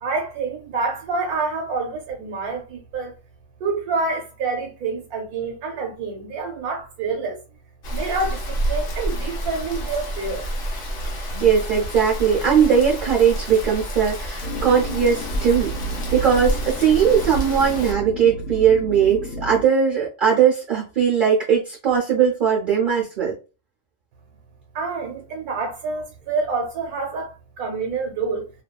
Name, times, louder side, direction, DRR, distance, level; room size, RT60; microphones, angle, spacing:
voice 1, 0.0-3.1 3.6-7.4 7.9-10.5 24.7-28.5, right 4 dB, 80° right, 1.2 m, -27 dB
Rain, 7.8-17.9, right 1 dB, 50° left, 0.7 m, -29 dB
voice 2, 11.4-15.7 16.1-23.3, right 7 dB, 50° right, 0.6 m, -19 dB
sound 1, 14.4-19.6, right 2 dB, 75° left, 1.0 m, -32 dB
2.7 x 2.3 x 2.2 m
omnidirectional pair, 1.6 m